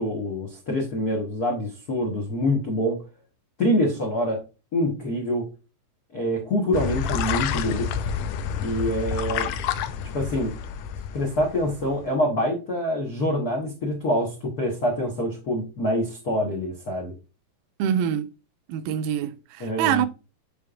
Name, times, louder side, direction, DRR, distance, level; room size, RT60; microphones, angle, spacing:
voice 1, 0.0-3.0 3.6-4.4 4.7-5.5 6.1-7.9 8.6-9.5 10.1-10.5 11.1-17.1 19.6-20.1, left 1 dB, 70° left, 0.9 m, -25 dB
sound 1, 6.7-12.0, left 8 dB, 85° left, 1.5 m, -29 dB
voice 2, 17.8-18.3 18.7-20.1, right 9 dB, 85° right, 2.1 m, -25 dB
8.2 x 5.2 x 2.4 m
omnidirectional pair, 3.8 m